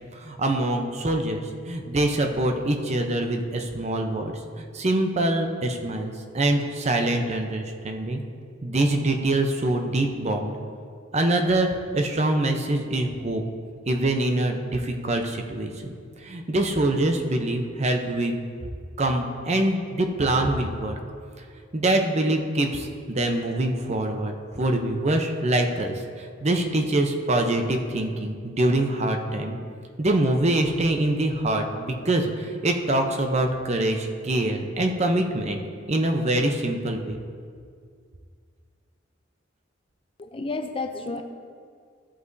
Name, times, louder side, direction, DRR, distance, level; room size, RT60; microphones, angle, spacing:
voice 1, 0.1-8.2 8.6-10.6 11.1-13.4 13.9-15.9 16.2-18.4 19.0-21.0 21.7-29.6 30.0-35.6 35.9-37.2, right 1 dB, 35° right, 4 dB, 0.7 m, -24 dB
voice 2, 40.2-41.2, left 3 dB, 25° left, 6 dB, 0.4 m, -31 dB
14.0 x 8.1 x 2.7 m, 2.1 s
head